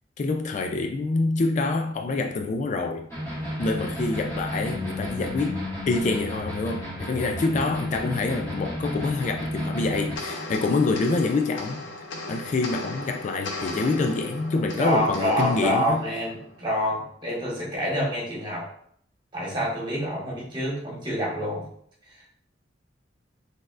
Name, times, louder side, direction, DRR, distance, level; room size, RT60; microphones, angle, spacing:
voice 1, 0.2-3.1 3.4-11.8 12.3-16.0, left 3 dB, 40° left, 4 dB, 0.3 m, -26 dB
sound 1, 3.1-10.2, equal, 15° left, 1.5 m, -32 dB
sound 2, 10.2-16.8, left 2 dB, 90° left, 0.7 m, -37 dB
voice 2, 14.8-18.7 19.3-21.7, equal, 25° right, -5 dB, 1.6 m, -27 dB
4.2 x 3.5 x 2.4 m, 0.64 s
head